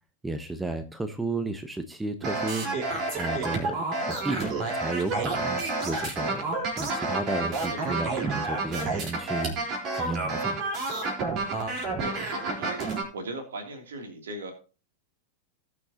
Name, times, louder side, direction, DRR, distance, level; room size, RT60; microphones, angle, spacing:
voice 1, 0.2-6.5 6.8-10.6, right 2 dB, 10° right, 10 dB, 1.1 m, -33 dB
sound 1, 2.2-13.0, right 3 dB, 35° right, 4.0 m, -30 dB
voice 2, 12.0-12.8 13.1-14.5, right 2 dB, 65° right, 4 dB, 3.1 m, -38 dB
19.0 x 6.7 x 2.9 m, 0.33 s
figure-of-eight pair, 90°, 0 cm